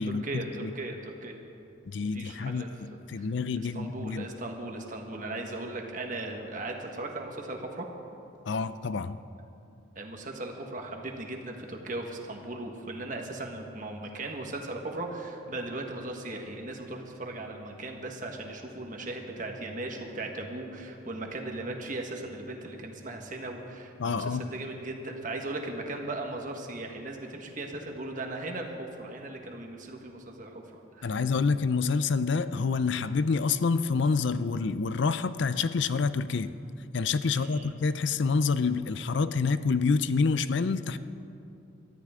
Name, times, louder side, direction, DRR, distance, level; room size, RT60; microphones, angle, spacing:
voice 1, 0.0-1.4 2.1-3.3 3.7-7.9 9.9-31.2 37.3-37.7, right 2 dB, 40° right, 2 dB, 1.5 m, -38 dB
voice 2, 1.9-4.3 8.5-9.2 24.0-24.5 31.0-36.5 36.9-41.0, left 4 dB, 65° left, 13 dB, 0.4 m, -27 dB
22.5 x 13.0 x 3.7 m, 2.7 s
head